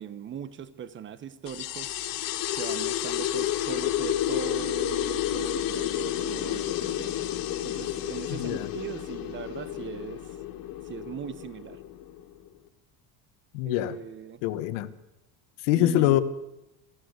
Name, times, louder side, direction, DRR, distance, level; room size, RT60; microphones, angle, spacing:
voice 1, 0.0-1.9 2.5-7.3 7.6-10.3 10.8-11.8 13.6-14.4 15.7-16.2, right 8 dB, 30° right, 16 dB, 1.1 m, -39 dB
sound 1, 1.5-12.5, left 12 dB, 55° left, 2.3 m, -31 dB
voice 2, 8.3-8.7 13.5-13.9 14.4-14.9 15.6-16.2, left 14 dB, 80° left, 13 dB, 1.4 m, -24 dB
23.0 x 14.5 x 8.1 m, 0.95 s
cardioid pair, 150°, 40 cm